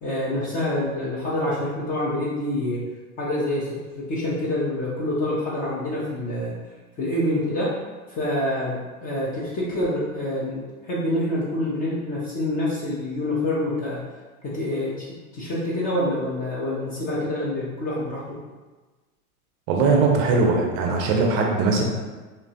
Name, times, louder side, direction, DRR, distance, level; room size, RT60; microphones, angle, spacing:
voice 1, 0.0-2.8 3.2-6.6 7.0-7.7 8.1-14.0 14.4-15.1 15.3-18.4, left 1 dB, 20° left, -6 dB, 0.4 m, -26 dB
voice 2, 19.7-21.8, right 4 dB, 40° right, 0 dB, 0.5 m, -20 dB
2.9 x 2.2 x 2.7 m, 1.3 s
hypercardioid pair, 105°, 45 cm